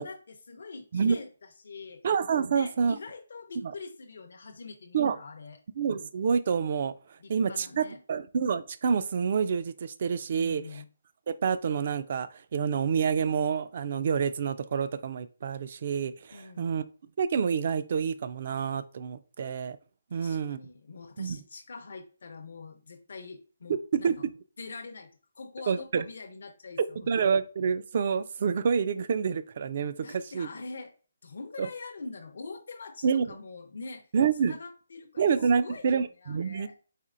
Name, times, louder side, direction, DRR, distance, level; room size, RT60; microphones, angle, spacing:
voice 1, 0.0-2.1 2.5-5.6 7.2-8.0 10.4-10.9 16.3-16.7 20.1-24.2 24.6-25.1 25.3-27.1 30.0-30.9 31.2-34.1 34.4-36.8, left 4 dB, 65° left, 4 dB, 0.5 m, -44 dB
voice 2, 2.0-3.0 3.6-3.7 4.9-5.2 5.8-6.9 7.3-10.6 11.3-16.8 17.2-19.8 20.1-20.6 21.2-21.4 23.9-24.2 25.7-26.0 27.0-30.5 31.6-31.7 33.0-33.3 34.1-34.5 35.2-36.7, right 6 dB, 45° right, 14 dB, 0.3 m, -28 dB
4.2 x 2.9 x 2.5 m, 0.38 s
hypercardioid pair, 160°, 0 cm